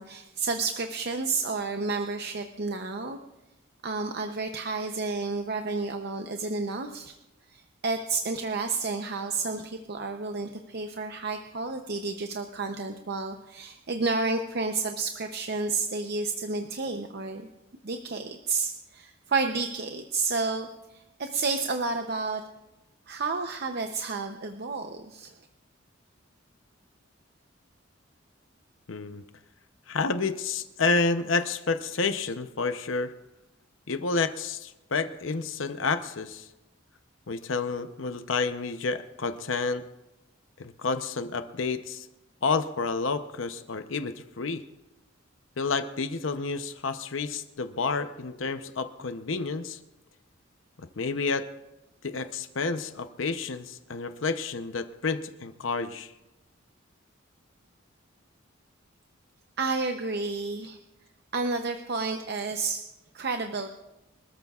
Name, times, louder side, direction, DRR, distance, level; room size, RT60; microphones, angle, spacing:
voice 1, 0.0-3.2 3.8-7.1 7.5-17.5 17.8-20.7 20.9-22.4 23.1-25.3 59.6-60.8 61.3-62.9 63.1-63.7, right 3 dB, 55° right, 5 dB, 0.7 m, -31 dB
voice 2, 28.9-29.2 29.9-33.1 33.9-36.5 37.3-39.8 40.6-42.1 42.4-44.6 45.6-49.8 51.0-51.5 52.0-56.1, left 4 dB, 70° left, 9 dB, 0.8 m, -30 dB
25.5 x 13.5 x 2.4 m, 0.99 s
head